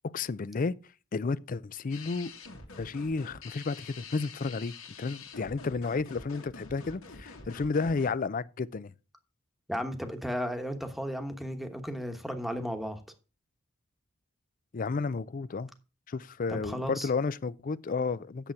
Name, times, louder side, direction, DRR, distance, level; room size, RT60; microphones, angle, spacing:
voice 1, 0.1-0.7 1.1-2.3 2.7-8.9 14.7-15.7 16.1-18.5, left 4 dB, 40° left, 0.4 m, -32 dB
sound 1, 1.9-8.1, left 4 dB, 90° left, 2.1 m, -47 dB
voice 2, 9.7-13.0 16.5-17.1, equal, ahead, 1.1 m, -34 dB
9.1 x 7.1 x 4.6 m
head